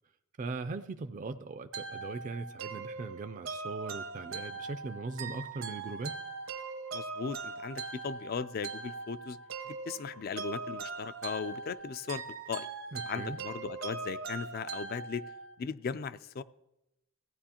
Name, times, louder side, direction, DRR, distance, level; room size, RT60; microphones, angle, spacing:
voice 1, 0.4-6.2 12.9-13.4, right 3 dB, 40° right, 8 dB, 0.4 m, -39 dB
sound 1, 1.7-15.5, right 4 dB, 80° right, 1.0 m, -41 dB
sound 2, 3.8-11.8, right 2 dB, 75° left, 1.6 m, -65 dB
voice 2, 6.9-9.4 9.7-12.7 13.0-15.2 15.6-16.4, left 5 dB, 45° left, 15 dB, 0.3 m, -38 dB
16.5 x 9.3 x 2.9 m, 0.91 s
head